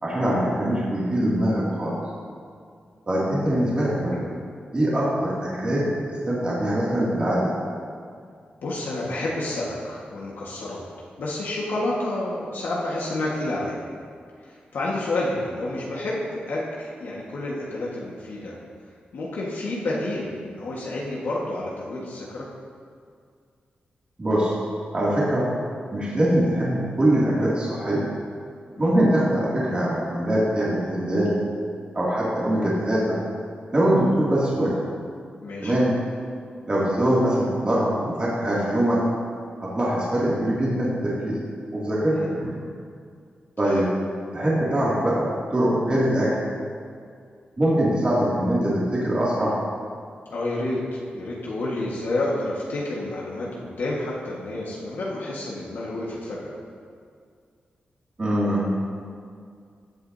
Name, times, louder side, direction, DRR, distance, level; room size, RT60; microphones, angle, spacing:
voice 1, 0.0-1.9 3.1-4.2 4.7-7.5 24.2-24.5 24.9-25.5 25.9-28.0 28.8-31.4 31.9-33.1 33.7-34.7 35.6-35.9 36.7-39.0 39.6-41.4 41.7-42.6 43.6-43.9 44.3-45.2 45.5-46.3 47.6-49.5 58.2-58.7, right 1 dB, 30° right, -8 dB, 2.4 m, -22 dB
voice 2, 8.6-10.8 11.2-13.8 14.4-18.6 19.1-22.4 28.7-28.9 35.4-35.7 42.1-42.4 43.6-43.9 50.3-56.5, left 2 dB, 80° left, -5 dB, 1.5 m, -29 dB
15.0 x 8.0 x 2.7 m, 2.2 s
wide cardioid pair, 95°, 3 cm